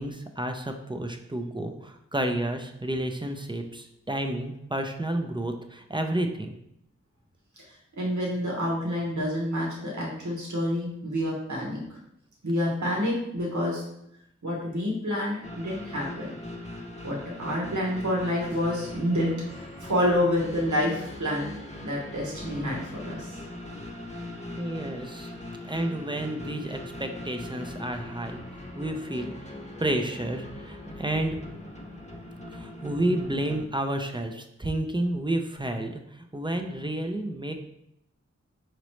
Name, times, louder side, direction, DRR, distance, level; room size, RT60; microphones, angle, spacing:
voice 1, 0.0-6.5 24.6-25.3 25.6-28.4 28.8-29.3 29.8-31.4 32.5-36.0 36.3-37.5, right 1 dB, 15° right, 5 dB, 0.4 m, -30 dB
voice 2, 8.0-12.0 12.4-13.8 14.4-16.4 17.0-21.5 21.8-23.3, left 1 dB, 80° right, -3 dB, 1.2 m, -28 dB
sound 1, 15.4-33.7, left 1 dB, 25° left, 0.8 m, -40 dB
5.0 x 3.0 x 3.1 m, 0.78 s
wide cardioid pair, 70°, 29 cm